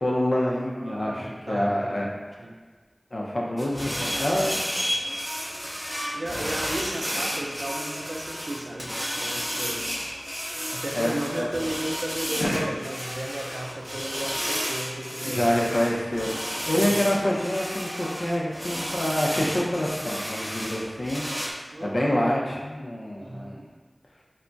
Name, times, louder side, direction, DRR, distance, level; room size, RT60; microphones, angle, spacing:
voice 1, 0.0-2.1 3.1-4.6 10.9-11.5 12.4-12.7 15.2-16.3 16.6-21.2 21.8-23.6, left 1 dB, 70° left, -3 dB, 0.5 m, -26 dB
voice 2, 0.5-2.0 2.4-2.6 3.7-4.6 6.1-9.8 10.7-15.5 16.9-17.1 21.7-22.1 23.2-23.7, right 1 dB, 75° right, -1 dB, 0.4 m, -35 dB
sound 1, 3.6-21.5, equal, 10° left, 0.5 m, -32 dB
2.3 x 2.1 x 3.8 m, 1.4 s
wide cardioid pair, 45°, 0 cm